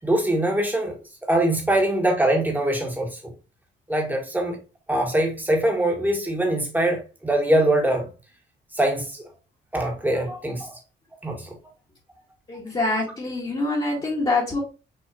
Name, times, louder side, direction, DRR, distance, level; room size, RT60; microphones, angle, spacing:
voice 1, 0.0-0.9 1.3-3.2 3.9-4.6 4.9-8.1 8.7-9.2 9.7-10.7 11.2-11.5, right 1 dB, 10° right, 1.7 m, -23 dB
voice 2, 12.5-14.6, left 2 dB, 25° left, 1.8 m, -25 dB
5.7 x 3.0 x 2.8 m
cardioid pair, 90°, 20 cm